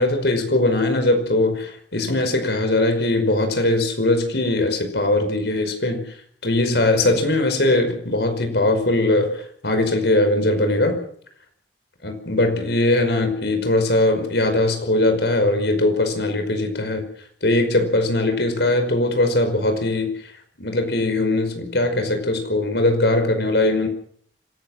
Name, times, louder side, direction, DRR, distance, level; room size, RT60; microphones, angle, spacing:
voice 1, 0.0-6.1 6.4-11.0 12.0-17.0 17.4-20.3 20.6-23.9, left 2 dB, 70° left, 7 dB, 5.4 m, -20 dB
26.0 x 18.5 x 6.5 m, 0.62 s
head